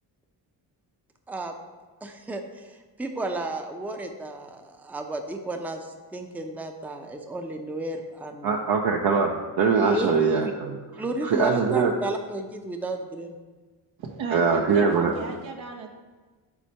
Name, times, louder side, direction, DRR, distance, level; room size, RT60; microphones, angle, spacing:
voice 1, 2.0-8.6 9.9-10.1 10.4-10.5 11.0-13.4, right 2 dB, 5° right, 4 dB, 0.6 m, -33 dB
voice 2, 8.4-11.9 14.3-15.1, right 5 dB, 50° right, 1 dB, 0.7 m, -23 dB
voice 3, 14.0-15.9, right 3 dB, 70° right, 3 dB, 1.0 m, -34 dB
4.7 x 4.2 x 5.5 m, 1.3 s
supercardioid pair, 50°, 49 cm